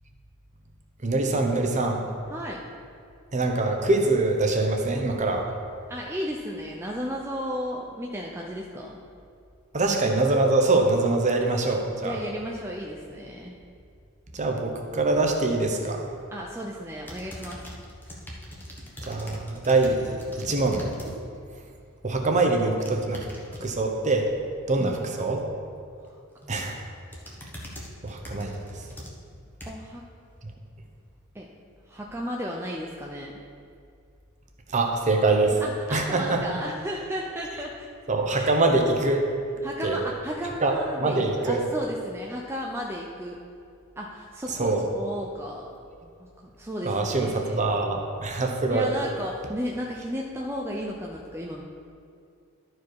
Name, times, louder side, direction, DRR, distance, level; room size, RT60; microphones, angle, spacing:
voice 1, 1.0-2.0 3.3-5.5 9.7-12.2 14.3-16.1 19.0-20.9 22.0-23.3 23.6-24.3 24.7-25.4 26.5-26.8 28.0-28.8 34.7-35.6 35.9-36.5 38.1-39.2 39.8-40.0 40.6-40.7 41.0-41.6 44.5-44.9 46.8-48.9, right 2 dB, 35° right, 2 dB, 0.9 m, -24 dB
voice 2, 2.3-2.6 5.9-9.0 12.0-13.6 16.3-17.6 24.8-25.0 26.0-26.1 26.4-26.7 29.7-30.1 31.3-31.5 31.9-33.4 35.6-37.9 38.3-38.6 39.6-43.4 44.0-45.7 46.0-46.3 46.6-47.7 48.7-51.6, equal, 10° right, -2 dB, 0.5 m, -34 dB
sound 1, 17.0-21.1 21.5-21.9 22.7-23.7 26.1-26.4 26.8-30.0 30.5-30.6, equal, 10° left, 1.1 m, -42 dB
12.0 x 4.7 x 4.7 m, 2.4 s
head